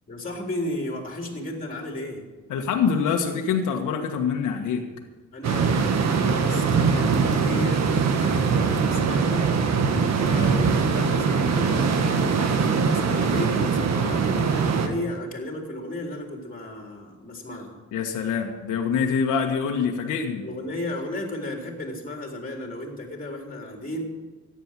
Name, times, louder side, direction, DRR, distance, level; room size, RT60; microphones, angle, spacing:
voice 1, 0.1-2.2 5.3-9.5 10.1-17.8 20.4-24.0, left 1 dB, 30° left, 2 dB, 3.7 m, -34 dB
voice 2, 2.5-4.8 17.9-20.4, left 6 dB, 85° left, 2 dB, 1.6 m, -25 dB
sound 1, 5.4-14.9, right 5 dB, 60° right, 1.8 m, -22 dB
14.5 x 10.0 x 7.5 m, 1.3 s
cardioid pair, 90°, 30 cm